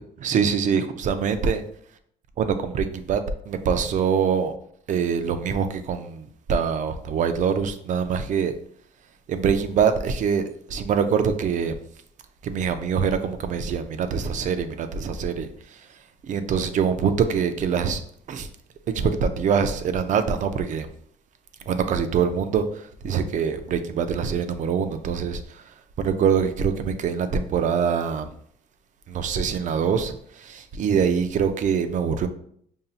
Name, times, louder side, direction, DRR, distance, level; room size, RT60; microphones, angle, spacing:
voice 1, 0.2-1.6 2.4-3.2 3.5-4.5 4.9-8.5 9.3-11.8 12.4-15.8 16.2-18.0 18.3-18.5 18.9-20.9 21.7-25.6 26.0-28.3 29.1-32.3, right 6 dB, 50° right, 9 dB, 0.5 m, -24 dB
5.3 x 2.7 x 2.4 m, 0.65 s
cardioid pair, 110°, 17 cm